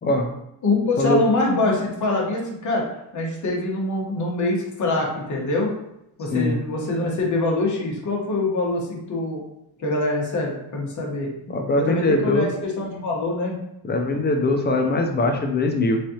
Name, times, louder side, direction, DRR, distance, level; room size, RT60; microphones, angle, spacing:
voice 1, 0.6-2.8 3.1-5.7 6.2-9.4 9.8-11.3 11.8-13.6, left 2 dB, 45° left, -2 dB, 1.1 m, -24 dB
voice 2, 11.5-12.5 13.8-16.0, left 2 dB, 25° left, 4 dB, 0.4 m, -21 dB
3.6 x 3.2 x 2.8 m, 0.83 s
cardioid pair, 160°, 41 cm